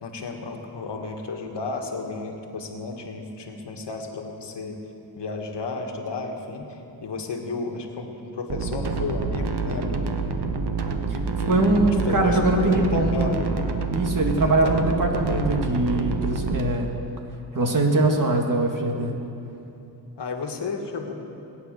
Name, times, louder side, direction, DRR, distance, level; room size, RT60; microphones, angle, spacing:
voice 1, 0.0-4.8 5.2-10.0 11.4-13.6 14.4-14.9 20.2-21.1, left 4 dB, 75° left, 3 dB, 1.7 m, -32 dB
sound 1, 8.5-16.6, right 4 dB, 65° right, 1.2 m, -27 dB
voice 2, 11.5-13.3 13.9-17.0 17.5-19.1, right 2 dB, 45° right, 2 dB, 2.1 m, -22 dB
21.0 x 9.1 x 6.7 m, 2.8 s
cardioid pair, 65°, 43 cm